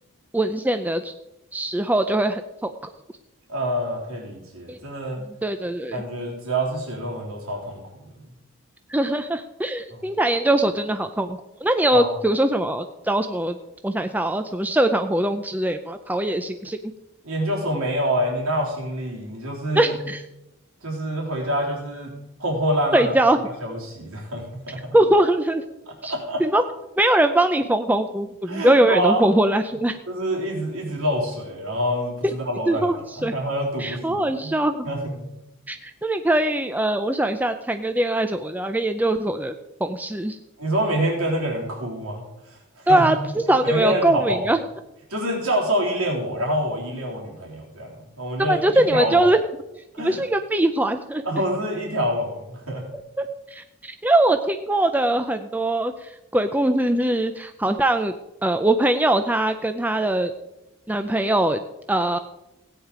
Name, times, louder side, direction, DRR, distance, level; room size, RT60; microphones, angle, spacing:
voice 1, 0.3-1.1 1.5-2.9 4.7-4.8 5.4-6.0 8.9-13.6 13.8-16.8 19.7-20.2 22.9-23.5 24.9-25.6 26.0-26.1 26.4-26.6 27.0-30.0 32.2-32.3 32.7-33.3 33.8-34.9 35.7-39.5 39.8-40.4 42.9-44.6 48.4-49.4 50.0-51.2 53.2-58.1 58.4-60.3 60.9-61.6 61.9-62.2, right 1 dB, 10° right, 8 dB, 0.4 m, -22 dB
voice 2, 3.5-5.2 5.9-8.1 11.9-12.1 17.2-20.0 20.8-22.1 22.4-23.2 23.6-25.0 25.9-26.4 28.5-29.3 30.1-34.5 34.8-35.1 40.6-43.1 43.6-44.4 45.1-49.3 49.9-50.2 51.2-52.8, equal, 85° right, -1 dB, 3.7 m, -26 dB
16.5 x 9.1 x 5.0 m, 0.93 s
head